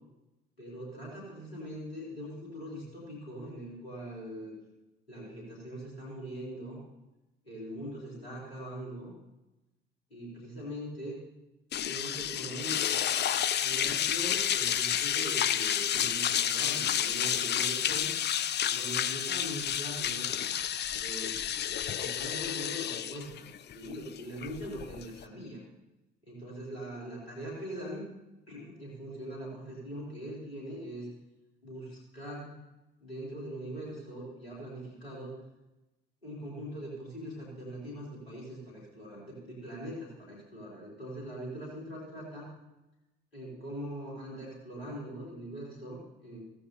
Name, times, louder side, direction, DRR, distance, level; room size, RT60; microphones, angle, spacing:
voice 1, 0.6-4.5 5.1-6.8 7.4-9.1 10.1-11.2 11.9-12.9 13.6-18.1 18.6-20.3 21.0-21.5 22.0-23.5 23.7-25.6 26.3-28.1 28.5-31.1 31.6-32.6 33.0-35.4 36.2-42.5 43.3-46.4, equal, 85° left, -5 dB, 3.5 m, -41 dB
sound 1, 11.7-25.2, left 10 dB, 35° left, 0.6 m, -30 dB
15.0 x 14.0 x 2.8 m, 1.0 s
figure-of-eight pair, 50°, 30 cm